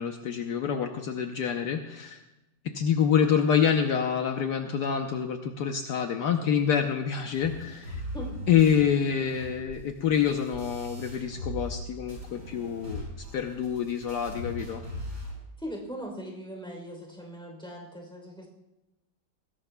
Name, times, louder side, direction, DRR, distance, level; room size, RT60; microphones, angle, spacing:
voice 1, 0.0-2.2 2.6-8.0 8.5-13.1 13.3-14.8, left 8 dB, 70° left, 4 dB, 1.3 m, -27 dB
sound 1, 7.3-11.8 12.1-15.3, left 1 dB, 50° right, 5.1 m, -39 dB
voice 2, 15.6-18.5, equal, ahead, 1 dB, 3.1 m, -39 dB
20.5 x 17.0 x 2.2 m, 0.98 s
omnidirectional pair, 1.9 m